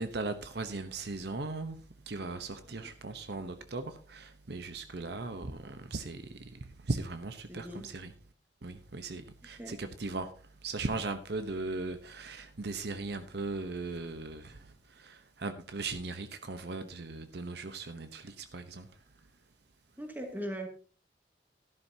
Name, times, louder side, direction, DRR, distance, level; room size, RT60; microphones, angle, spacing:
voice 1, 0.0-1.8 2.0-8.1 8.6-18.9, right 3 dB, 65° right, 0.9 m, -38 dB
voice 2, 7.5-7.9 9.6-9.8 20.0-20.7, equal, 10° right, 2.3 m, -40 dB
13.0 x 12.0 x 2.8 m
head